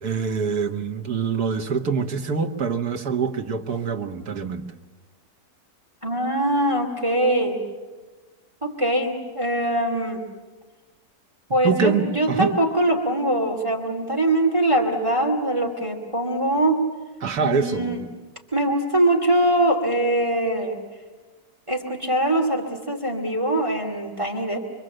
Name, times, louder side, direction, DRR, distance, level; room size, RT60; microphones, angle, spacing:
voice 1, 0.0-4.7 11.6-12.5 17.2-18.1, right 5 dB, 80° right, 3 dB, 2.1 m, -25 dB
voice 2, 6.0-7.6 8.6-10.3 11.5-16.8 17.4-18.0 18.5-20.8 21.7-24.6, right 1 dB, 20° right, 2 dB, 2.4 m, -22 dB
26.0 x 24.5 x 7.9 m, 1.3 s
omnidirectional pair, 1.6 m